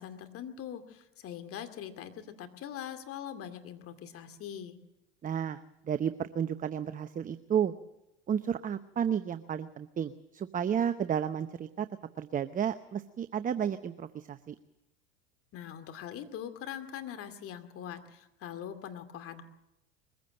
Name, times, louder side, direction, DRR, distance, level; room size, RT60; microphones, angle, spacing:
voice 1, 0.0-4.8 15.5-19.4, left 9 dB, 45° left, 9 dB, 2.4 m, -42 dB
voice 2, 5.2-7.7 8.3-11.9 12.2-14.5, right 8 dB, 25° right, 11 dB, 0.8 m, -32 dB
22.0 x 15.5 x 7.8 m, 0.90 s
hypercardioid pair, 95°, 32 cm